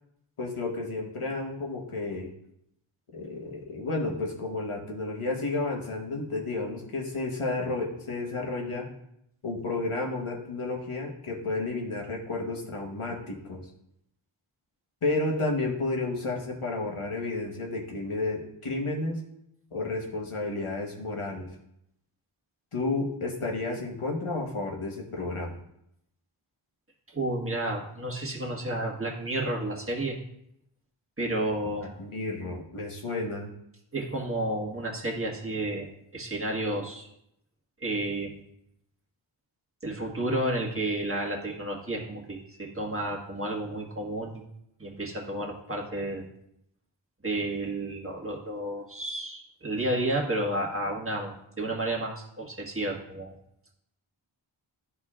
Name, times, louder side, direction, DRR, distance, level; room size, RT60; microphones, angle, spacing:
voice 1, 0.4-2.3 3.1-8.9 9.4-13.6 15.0-19.2 19.7-21.5 22.7-25.6 32.0-33.5, left 2 dB, 85° left, -1 dB, 1.3 m, -31 dB
voice 2, 27.1-30.1 31.2-32.0 33.9-35.9 36.1-37.1 37.8-38.4 39.8-44.4 44.8-46.3 47.2-53.3, right 1 dB, 25° right, -2 dB, 1.5 m, -31 dB
12.0 x 4.3 x 2.4 m, 0.76 s
wide cardioid pair, 50°, 49 cm